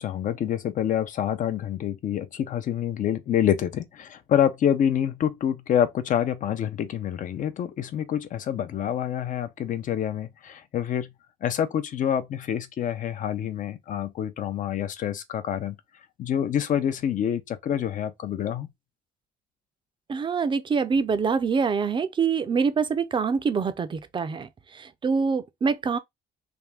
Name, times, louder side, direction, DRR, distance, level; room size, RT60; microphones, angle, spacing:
voice 1, 0.0-11.1 11.4-15.8 16.2-18.7, left 9 dB, 50° left, 0.6 m, -27 dB
voice 2, 20.1-26.0, right 5 dB, 30° right, 0.5 m, -25 dB
3.5 x 2.6 x 3.3 m
cardioid pair, 110°, 17 cm